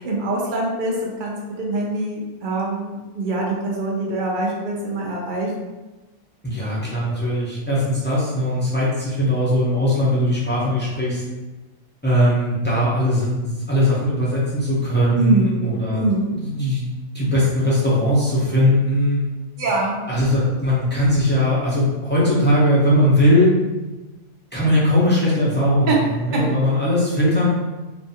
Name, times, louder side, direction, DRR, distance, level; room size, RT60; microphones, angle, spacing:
voice 1, 0.0-5.5 15.1-15.6 15.9-16.3 19.6-20.0 25.9-26.0, right 2 dB, 60° right, -2 dB, 0.5 m, -24 dB
voice 2, 6.4-11.2 12.0-16.0 16.3-16.9 17.1-19.2 20.1-23.6 24.5-27.5, left 1 dB, 15° left, -9 dB, 0.4 m, -19 dB
2.6 x 2.3 x 2.7 m, 1.1 s
omnidirectional pair, 1.4 m